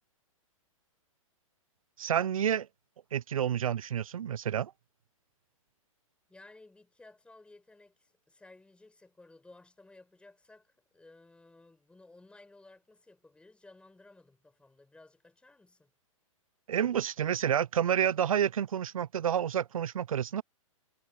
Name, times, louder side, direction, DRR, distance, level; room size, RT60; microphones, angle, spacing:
voice 1, 2.0-2.7 3.1-4.7 16.7-20.4, right 9 dB, 75° right, 0.7 m, -29 dB
voice 2, 6.3-15.9, left 2 dB, 5° left, 5.3 m, -57 dB
hypercardioid pair, 120°, 18 cm